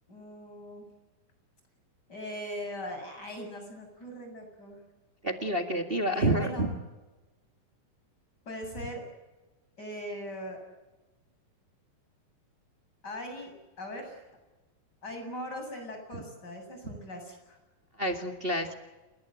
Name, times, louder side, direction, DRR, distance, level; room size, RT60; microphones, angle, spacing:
voice 1, 0.1-0.8 2.1-4.8 6.1-6.7 8.5-9.0 9.8-10.6 13.0-14.2 15.0-17.6, equal, 25° left, 4 dB, 8.0 m, -40 dB
voice 2, 5.2-6.7 18.0-18.7, right 1 dB, 25° right, 5 dB, 1.2 m, -28 dB
29.5 x 20.5 x 9.0 m, 1.2 s
omnidirectional pair, 4.1 m